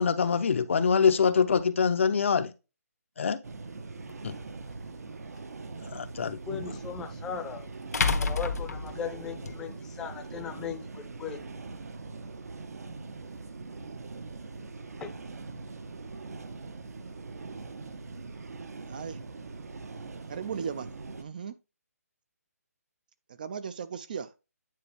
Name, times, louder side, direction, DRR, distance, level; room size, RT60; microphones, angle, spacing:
voice 1, 0.0-2.5 3.2-3.4 4.2-4.3 5.9-6.6, left 6 dB, 50° left, 0.7 m, -24 dB
sound 1, 3.4-21.2, right 3 dB, 70° right, 1.1 m, -42 dB
sound 2, 4.1-4.2 6.8-6.9 7.9-9.5, left 4 dB, 80° left, 1.3 m, -28 dB
voice 2, 6.2-7.7 8.2-11.4 15.0-15.1, left 7 dB, 5° left, 0.7 m, -38 dB
voice 3, 18.9-19.2 20.3-21.6 23.3-24.3, right 6 dB, 30° right, 0.4 m, -37 dB
9.4 x 4.3 x 3.4 m
hypercardioid pair, 165°, 9 cm